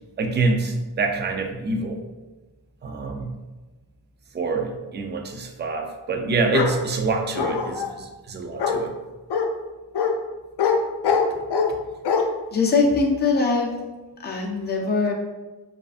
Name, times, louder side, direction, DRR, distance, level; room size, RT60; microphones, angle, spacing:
voice 1, 0.2-2.0 2.8-3.3 4.3-8.9, right 3 dB, 30° right, 4 dB, 0.4 m, -26 dB
Bark, 6.5-6.8 7.4-7.9 8.6-8.8 9.3-9.5 9.9-10.1 10.6-10.8 11.0-11.7 12.0-12.2, left 6 dB, 80° left, 0.5 m, -22 dB
voice 2, 12.5-13.8 14.2-15.1, left 4 dB, 25° left, 0 dB, 0.5 m, -21 dB
4.7 x 2.5 x 2.4 m, 1.2 s
wide cardioid pair, 100°, 39 cm